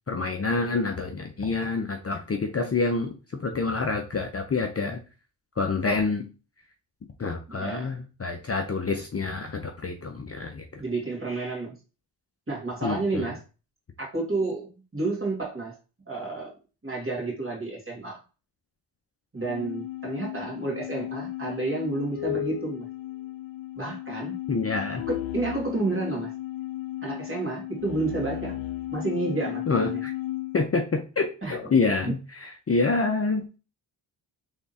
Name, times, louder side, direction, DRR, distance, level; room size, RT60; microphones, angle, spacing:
voice 1, 0.1-5.0 5.6-6.2 7.2-10.8 12.8-13.3 24.5-25.0 29.7-30.1 30.5-33.5, left 3 dB, 30° left, 3 dB, 0.6 m, -27 dB
voice 2, 7.6-7.9 10.8-11.8 12.5-13.4 14.0-15.8 16.1-16.6 16.8-18.2 19.3-22.9 23.8-24.3 25.1-26.3 27.0-28.6 28.9-30.0 31.4-31.6 32.1-32.2, right 3 dB, 25° right, -3 dB, 2.1 m, -30 dB
sound 1, 19.4-30.6, left 15 dB, 70° left, 0.6 m, -34 dB
3.6 x 3.5 x 2.8 m, 0.32 s
cardioid pair, 65°, 48 cm